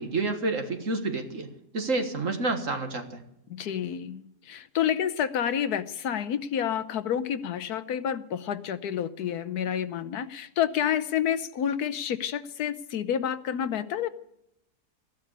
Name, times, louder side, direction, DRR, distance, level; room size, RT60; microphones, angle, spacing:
voice 1, 0.0-1.5 1.7-3.2, right 3 dB, 55° right, 6 dB, 1.9 m, -29 dB
voice 2, 3.5-14.1, left 9 dB, 75° left, 13 dB, 1.3 m, -29 dB
14.5 x 11.5 x 8.2 m, 0.79 s
omnidirectional pair, 1.7 m